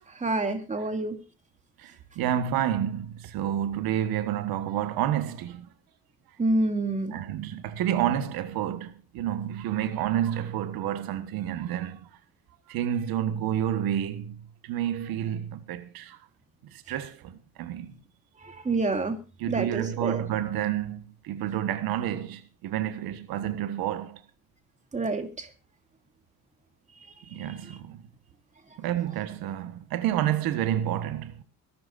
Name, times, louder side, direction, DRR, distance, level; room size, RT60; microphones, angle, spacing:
voice 1, 0.1-1.2 6.4-7.2 18.4-19.2 19.5-20.2 24.9-25.5 27.7-27.8, right 2 dB, 20° right, 2.6 m, -28 dB
voice 2, 1.8-5.7 7.1-12.1 12.7-16.2 16.6-17.9 19.4-24.2 27.3-28.1 28.8-31.4, right 11 dB, 85° right, 1.5 m, -29 dB
23.5 x 12.0 x 2.6 m
cardioid pair, 125°, 35 cm